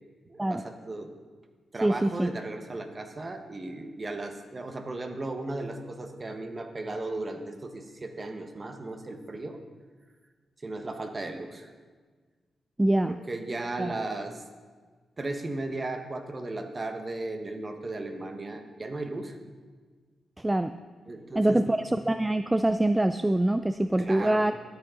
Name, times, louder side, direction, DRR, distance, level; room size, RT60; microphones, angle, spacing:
voice 1, 0.3-1.1 1.7-9.6 10.6-11.7 13.1-14.4 15.2-19.4 21.1-21.6 24.0-24.5, right 2 dB, 35° right, 6 dB, 1.2 m, -36 dB
voice 2, 1.8-2.3 12.8-13.2 13.8-13.9 20.4-20.7 21.3-24.5, right 1 dB, 15° right, 10 dB, 0.4 m, -24 dB
13.0 x 8.9 x 3.9 m, 1.5 s
cardioid pair, 65°, 0 cm